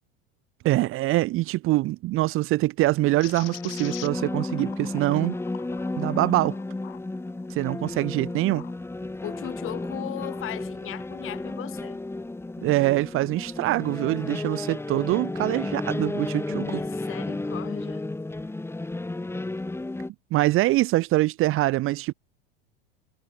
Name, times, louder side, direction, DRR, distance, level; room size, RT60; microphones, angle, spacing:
voice 1, 0.6-5.3 6.0-6.6 7.5-8.6 12.6-16.8 20.3-22.1, right 18 dB, 45° right, 1.0 m, -24 dB
sound 1, 3.0-20.1, left 2 dB, 10° left, 3.1 m, -33 dB
sound 2, 3.2-8.8 9.3-10.5, left 21 dB, 70° left, 3.7 m, -45 dB
voice 2, 9.2-12.0 16.5-18.0, left 13 dB, 45° left, 8.0 m, -37 dB
hypercardioid pair, 95°, 30 cm